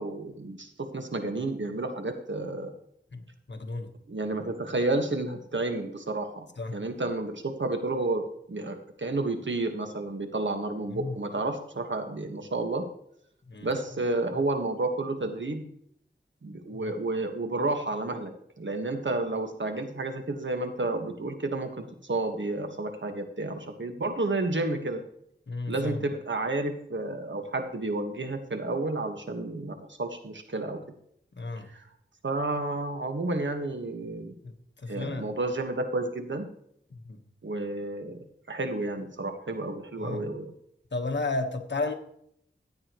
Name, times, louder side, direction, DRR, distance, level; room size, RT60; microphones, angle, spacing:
voice 1, 0.0-2.7 4.1-6.5 6.7-12.8 13.6-15.7 16.4-18.3 18.6-25.0 25.7-30.8 31.7-31.8 32.2-34.3 34.9-36.5 37.4-38.2 38.5-40.5, right 2 dB, 75° right, 5 dB, 1.5 m, -31 dB
voice 2, 3.5-3.9 6.6-6.8 10.9-11.2 13.5-13.7 16.7-16.8 25.5-26.0 31.4-31.7 34.8-35.3 37.1-37.2 40.0-40.2 40.9-41.9, left 3 dB, 70° left, 5 dB, 1.3 m, -32 dB
14.5 x 8.9 x 3.1 m, 0.69 s
wide cardioid pair, 50°, 19 cm